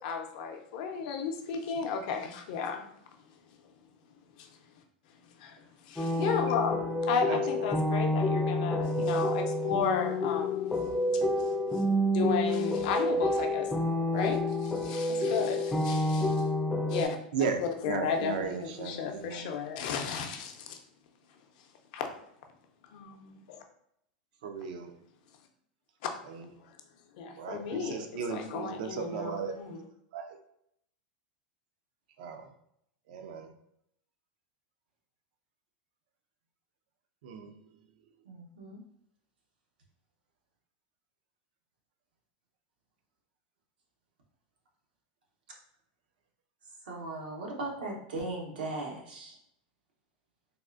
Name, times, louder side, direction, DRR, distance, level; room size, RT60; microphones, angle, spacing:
voice 1, 0.0-2.8 4.4-4.5 5.4-10.7 11.1-11.8 12.1-13.7 14.1-16.5 16.9-17.2 17.6-20.8 21.9-22.1 22.9-23.6 26.0-26.1 26.6-26.7 27.2-29.9, left 6 dB, 65° left, 4 dB, 0.5 m, -34 dB
sound 1, 6.0-17.1, left 1 dB, 10° left, 0.3 m, -29 dB
voice 2, 7.3-7.7 17.3-17.6 17.9-19.5 24.4-24.9 27.4-29.5 30.1-30.4 32.2-32.4 33.1-33.5 37.2-37.5, right 6 dB, 70° right, 6 dB, 0.4 m, -35 dB
voice 3, 38.3-38.8 46.9-49.3, right 2 dB, 90° right, -1 dB, 0.8 m, -38 dB
3.5 x 2.4 x 2.4 m, 0.74 s
supercardioid pair, 125°, 5 cm